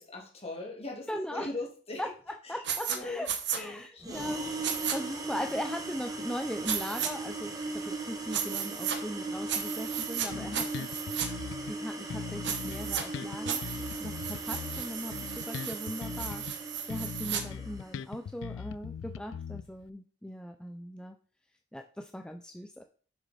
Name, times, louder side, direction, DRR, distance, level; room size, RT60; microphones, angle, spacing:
voice 1, 0.0-2.1 2.4-2.6 2.9-4.4 10.2-10.6, left 2 dB, 35° left, -1 dB, 2.2 m, -41 dB
voice 2, 1.1-1.5 2.0-2.1 2.5-3.3 3.5-10.9 11.7-21.2 21.7-22.8, left 1 dB, 5° left, 5 dB, 0.4 m, -39 dB
sound 1, 2.6-3.0 3.2-3.6 4.6-5.0 6.6-7.1 8.3-9.0 9.5-10.3 10.5-11.3 12.4-13.0 13.5-17.4, right 8 dB, 65° right, 1.1 m, -34 dB
sound 2, 4.0-18.0, right 3 dB, 20° right, 1.1 m, -38 dB
Bass guitar, 10.3-11.8 12.1-16.6 16.9-19.9, left 7 dB, 80° left, 0.3 m, -40 dB
7.0 x 6.2 x 4.2 m, 0.43 s
head